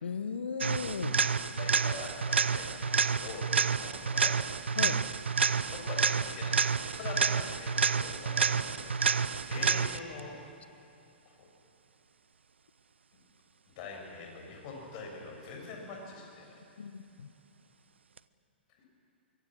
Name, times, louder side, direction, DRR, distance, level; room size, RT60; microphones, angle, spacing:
voice 1, 0.0-1.2 4.8-5.0 16.8-17.3, left 5 dB, 75° left, 12 dB, 1.1 m, -36 dB
sound 1, 0.6-10.2 18.2-18.3, right 5 dB, 80° right, 0.6 m, -29 dB
voice 2, 1.6-4.3 5.6-10.4 11.3-11.5 13.7-16.6 18.8-18.9, left 4 dB, 40° left, 0 dB, 7.0 m, -44 dB
24.5 x 23.0 x 6.4 m, 2.6 s
figure-of-eight pair, 120°, 6 cm